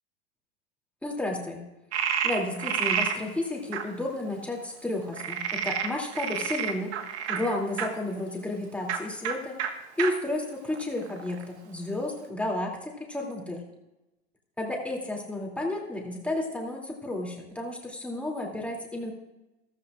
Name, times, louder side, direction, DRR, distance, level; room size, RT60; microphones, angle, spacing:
voice 1, 1.0-1.6 2.2-6.9 7.3-9.6 10.0-13.6 14.6-19.1, left 1 dB, 5° left, -1 dB, 2.7 m, -32 dB
Frog, 1.9-3.2 3.7-3.8 5.1-7.9 8.8-9.0 9.2-9.3 9.6-9.7 10.0-10.1 10.7-11.4, right 8 dB, 80° right, 1.5 m, -29 dB
14.5 x 13.5 x 2.5 m, 0.99 s
supercardioid pair, 125°, 33 cm